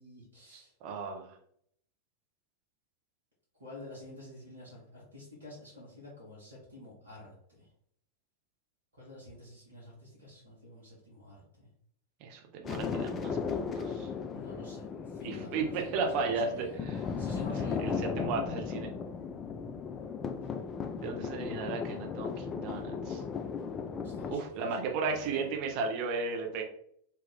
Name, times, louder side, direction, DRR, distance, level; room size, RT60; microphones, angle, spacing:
voice 1, 0.0-0.7 3.6-7.7 8.9-11.7 14.3-16.8 17.2-18.0 20.4-20.5 24.0-25.5, left 1 dB, 75° right, -5 dB, 1.1 m, -50 dB
voice 2, 0.5-1.4 12.2-14.1 15.2-17.1 17.5-18.9 21.0-23.2 24.3-26.6, right 4 dB, 40° right, 2 dB, 0.7 m, -35 dB
sound 1, 12.6-24.4, left 5 dB, 25° left, 0.3 m, -36 dB
2.8 x 2.4 x 3.7 m, 0.66 s
figure-of-eight pair, 90°, 0 cm